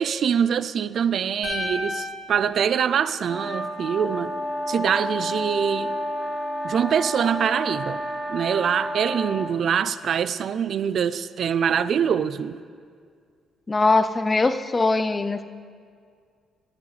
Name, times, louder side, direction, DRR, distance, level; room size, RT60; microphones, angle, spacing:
voice 1, 0.0-4.4 4.7-6.0 6.6-8.0 8.3-12.6, right 8 dB, 60° right, 15 dB, 0.3 m, -24 dB
sound 1, 1.4-3.7, left 3 dB, 50° left, 2.5 m, -34 dB
sound 2, 3.3-9.5, equal, 10° left, 2.6 m, -30 dB
voice 2, 13.7-15.4, left 3 dB, 25° left, 11 dB, 0.5 m, -21 dB
14.5 x 11.0 x 3.3 m, 2.1 s
cardioid pair, 90°, 0 cm